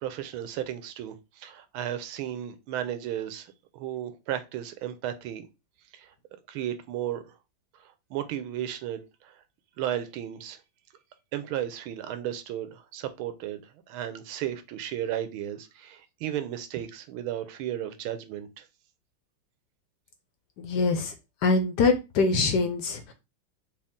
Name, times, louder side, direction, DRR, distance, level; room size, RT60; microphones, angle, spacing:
voice 1, 0.0-3.5 3.7-5.5 5.9-6.1 6.5-7.3 7.8-9.4 9.8-10.6 11.3-18.7, right 11 dB, 90° right, 1.5 m, -34 dB
voice 2, 20.6-21.1 21.4-23.1, left 4 dB, 65° left, 1.1 m, -24 dB
5.1 x 2.4 x 3.5 m
omnidirectional pair, 2.2 m